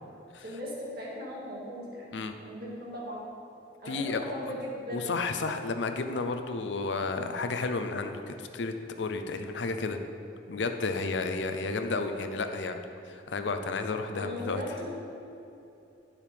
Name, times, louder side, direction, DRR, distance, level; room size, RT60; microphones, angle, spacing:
voice 1, 0.4-2.0 2.4-3.3 3.8-5.2 14.1-14.9, left 1 dB, 60° right, -4 dB, 2.0 m, -38 dB
voice 2, 3.8-4.5 4.9-10.0 10.5-12.8 13.1-14.6, left 3 dB, 75° left, 7 dB, 0.6 m, -32 dB
9.9 x 7.3 x 3.4 m, 2.8 s
head